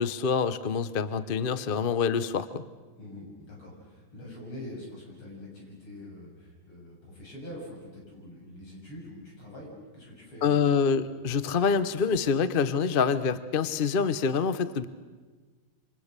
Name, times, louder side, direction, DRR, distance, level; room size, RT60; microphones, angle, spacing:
voice 1, 0.0-2.6 10.4-14.9, left 6 dB, 55° left, 13 dB, 0.5 m, -26 dB
voice 2, 3.0-10.7, left 1 dB, 75° left, -2 dB, 8.5 m, -44 dB
28.0 x 26.0 x 6.7 m, 1.4 s
omnidirectional pair, 2.4 m